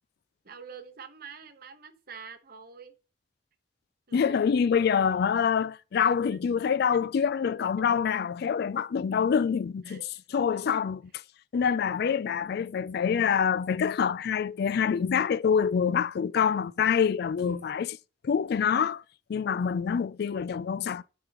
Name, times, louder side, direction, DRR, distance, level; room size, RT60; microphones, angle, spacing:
voice 1, 0.4-2.9 4.1-4.4 4.8-4.9 6.3-6.4 6.9-7.0 9.8-10.0 17.4-17.8, right 5 dB, 55° right, 1.1 m, -46 dB
voice 2, 4.1-10.0 10.3-11.1 11.5-18.0 18.2-19.0 19.3-21.0, left 7 dB, 60° left, 0.4 m, -26 dB
12.5 x 5.2 x 3.0 m
head